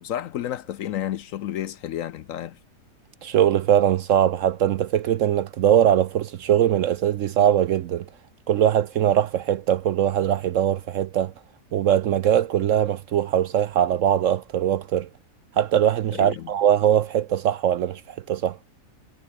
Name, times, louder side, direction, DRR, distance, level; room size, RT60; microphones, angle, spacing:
voice 1, 0.0-2.6 16.1-16.5, left 11 dB, 65° left, 0.9 m, -31 dB
voice 2, 3.2-8.1 8.5-11.3 11.7-15.1 15.5-18.6, right 10 dB, 65° right, 0.8 m, -21 dB
omnidirectional pair, 1.7 m